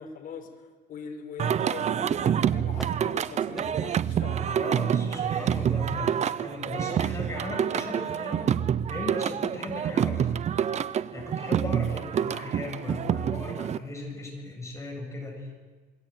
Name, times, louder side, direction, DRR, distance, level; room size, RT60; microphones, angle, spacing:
voice 1, 0.0-4.7 6.9-7.5, left 6 dB, 60° left, 3 dB, 4.6 m, -42 dB
Singing, 1.4-13.8, right 9 dB, 45° right, 0.8 m, -27 dB
sound 1, 2.7-3.1 3.5-3.8 4.3-4.5 5.1-5.3 6.0-6.3 6.9-7.1, equal, ahead, 2.1 m, -44 dB
voice 2, 4.5-8.6 8.9-10.3 11.1-15.5, left 2 dB, 15° left, 1 dB, 7.7 m, -37 dB
27.5 x 21.5 x 9.2 m, 1.4 s
cardioid pair, 135°, 17 cm